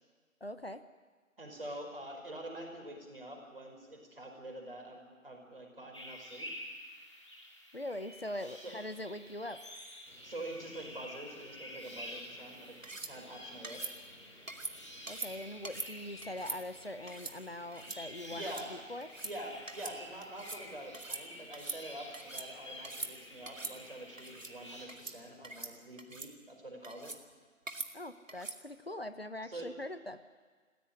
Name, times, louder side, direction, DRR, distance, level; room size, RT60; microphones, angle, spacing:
voice 1, 0.4-0.8 7.7-9.6 15.1-19.1 27.9-30.2, left 1 dB, 50° left, 11 dB, 1.0 m, -42 dB
voice 2, 1.4-6.5 8.6-8.7 10.2-12.7 13.0-14.0 18.3-18.7 19.2-27.1 29.4-29.7, right 1 dB, 45° right, 2 dB, 5.0 m, -46 dB
sound 1, 5.9-24.9, equal, 20° left, 2.0 m, -50 dB
sound 2, 10.1-25.8, left 1 dB, 75° left, 3.9 m, -62 dB
sound 3, 12.8-13.1 13.6-13.9 14.5-14.7 15.1-15.3 15.6-15.9 16.2-16.6 17.1-17.3 17.7-18.0 18.3-18.6 19.0-19.3 19.7-20.0 20.2-20.6 20.9-21.2 21.5-22.5 22.8-23.1 23.5-23.7 24.2-24.5 24.9-25.2 25.4-25.7 26.0-26.3 26.8-27.2 27.7-27.9 28.3-28.6, right 3 dB, 70° right, 2.2 m, -42 dB
22.5 x 15.5 x 10.0 m, 1.5 s
figure-of-eight pair, 175°, 40 cm